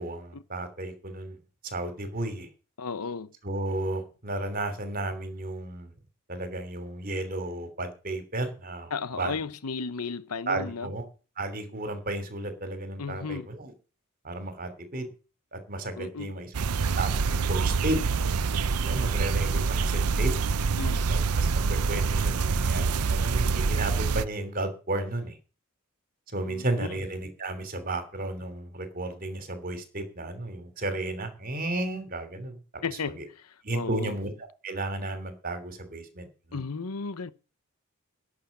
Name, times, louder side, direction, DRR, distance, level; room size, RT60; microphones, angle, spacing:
voice 1, 0.0-1.4 1.6-2.5 3.4-5.9 6.3-8.9 9.2-9.4 10.5-11.0 11.4-13.7 14.2-15.1 15.5-16.5 17.0-18.0 18.8-20.3 21.1-25.4 26.3-32.6 33.6-34.3 34.6-36.6, right 2 dB, 40° right, 3.0 m, -33 dB
voice 2, 2.8-3.3 8.9-10.9 13.0-13.5 16.0-16.4 20.7-21.1 26.5-27.0 32.8-34.2 36.5-37.3, left 5 dB, 90° left, 0.9 m, -35 dB
sound 1, 16.5-24.2, right 4 dB, 90° right, 0.6 m, -26 dB
11.5 x 6.5 x 9.4 m
head